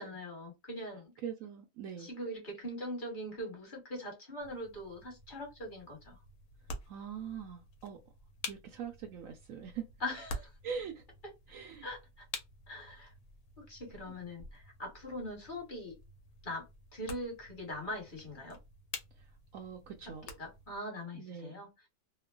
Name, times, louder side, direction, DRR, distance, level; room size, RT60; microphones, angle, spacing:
voice 1, 0.0-1.1 2.0-6.2 10.0-10.5 11.8-12.2 12.7-13.1 13.6-15.9 16.4-16.6 16.9-18.6 20.4-21.7, left 1 dB, 35° left, 1.3 m, -42 dB
voice 2, 1.2-2.1 6.9-8.0 8.5-9.9 10.6-11.1 11.5-11.9 14.1-14.2 19.2-19.3 19.5-20.3 21.2-21.6, right 7 dB, 70° right, 0.9 m, -42 dB
sound 1, 4.4-20.8, left 3 dB, 75° left, 1.2 m, -49 dB
3.0 x 2.1 x 2.3 m
omnidirectional pair, 1.6 m